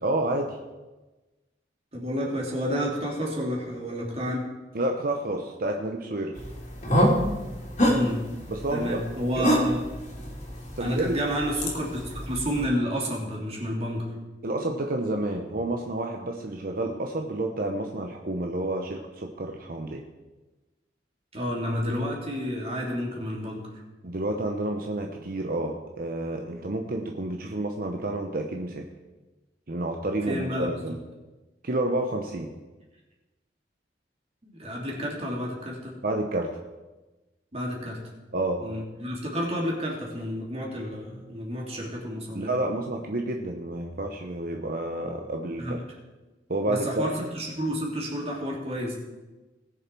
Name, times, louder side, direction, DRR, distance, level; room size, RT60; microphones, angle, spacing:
voice 1, 0.0-0.6 4.7-6.4 8.5-9.0 9.4-9.5 10.8-11.2 14.4-20.0 24.0-28.9 29.7-31.0 31.6-32.5 36.0-36.6 38.3-38.6 42.3-45.8 46.5-47.1, right 1 dB, 55° right, 3 dB, 0.9 m, -29 dB
voice 2, 1.9-4.5 7.9-8.2 8.7-9.8 10.8-14.1 21.3-23.7 30.3-31.0 34.5-35.9 37.5-38.0 38.6-42.5 45.6-45.8 46.7-49.0, equal, 35° right, -2 dB, 2.8 m, -30 dB
sound 1, 6.4-12.6, equal, 40° left, 2.9 m, -27 dB
19.5 x 6.8 x 4.5 m, 1.1 s
head